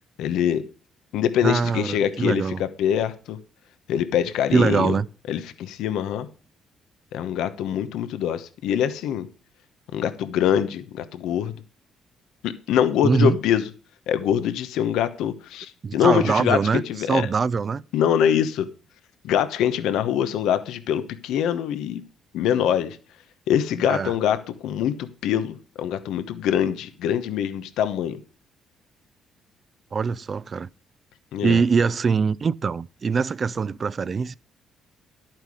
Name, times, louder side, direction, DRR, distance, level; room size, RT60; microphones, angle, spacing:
voice 1, 0.2-0.6 1.1-3.4 3.9-5.0 5.3-6.3 7.1-9.3 9.9-11.6 12.4-13.7 14.1-17.3 17.9-18.7 19.2-22.0 22.3-23.0 23.5-28.2 31.3-31.6, left 9 dB, 85° left, 1.0 m, -24 dB
voice 2, 1.4-2.6 4.5-5.1 13.0-13.4 15.8-16.8 17.1-17.8 23.9-24.1 29.9-30.7 31.4-34.4, right 5 dB, 35° right, 0.4 m, -23 dB
11.5 x 9.0 x 4.9 m
cardioid pair, 130°, 0 cm